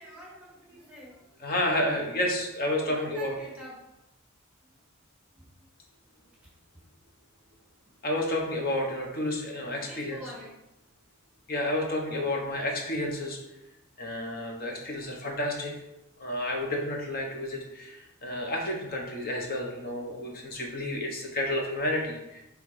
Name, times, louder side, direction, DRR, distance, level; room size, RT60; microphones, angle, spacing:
voice 1, 0.0-1.5 2.8-3.8 5.3-5.6 6.1-6.5 9.8-10.5, right 1 dB, 5° right, -7 dB, 1.8 m, -46 dB
voice 2, 1.4-3.3 8.0-10.2 11.5-13.4 14.0-15.7 16.2-22.4, left 1 dB, 45° left, 0 dB, 1.2 m, -30 dB
5.7 x 3.4 x 4.9 m, 0.93 s
head